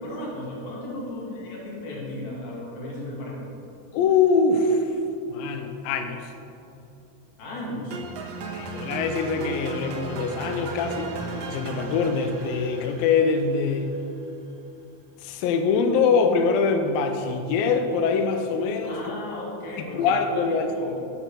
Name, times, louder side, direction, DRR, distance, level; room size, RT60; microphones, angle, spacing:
voice 1, 0.0-3.5 7.4-8.0 18.8-21.0, left 1 dB, 65° left, -4 dB, 3.9 m, -35 dB
voice 2, 3.9-5.0 5.3-6.3 8.5-11.1 11.5-13.9 15.2-19.0 19.9-20.7, left 5 dB, 85° left, 6 dB, 2.2 m, -23 dB
sound 1, 7.9-14.0, right 3 dB, 70° right, 1.7 m, -35 dB
8.4 x 8.4 x 6.3 m, 2.8 s
omnidirectional pair, 4.7 m